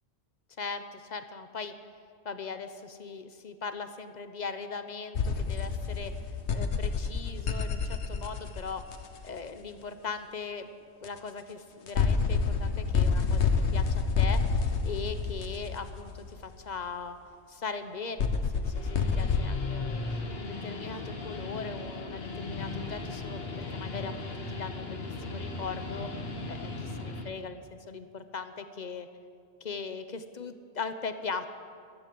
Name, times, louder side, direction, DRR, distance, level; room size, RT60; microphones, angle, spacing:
voice 1, 0.6-1.7 2.2-6.1 6.5-8.8 9.2-10.7 11.0-14.4 14.8-17.2 17.5-18.9 19.2-20.0 20.3-26.1 26.5-29.1 29.6-31.5, left 5 dB, 45° left, 9 dB, 1.0 m, -39 dB
sound 1, 5.1-9.3 11.0-11.1 11.9-16.4 18.2-19.4, left 5 dB, 85° left, 1.3 m, -28 dB
Guitar, 18.6-27.3, left 3 dB, 65° left, 1.7 m, -37 dB
14.5 x 13.0 x 7.7 m, 2.2 s
omnidirectional pair, 1.1 m